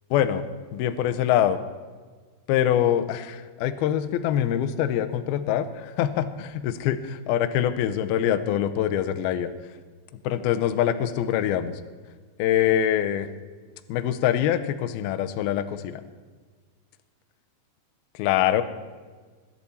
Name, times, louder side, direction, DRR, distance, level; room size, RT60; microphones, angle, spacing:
voice 1, 0.1-0.4 0.7-1.6 2.5-9.5 10.2-11.8 12.4-13.3 13.9-16.0 18.1-18.6, left 10 dB, 85° left, 9 dB, 2.2 m, -24 dB
22.0 x 10.5 x 4.2 m, 1.5 s
omnidirectional pair, 5.4 m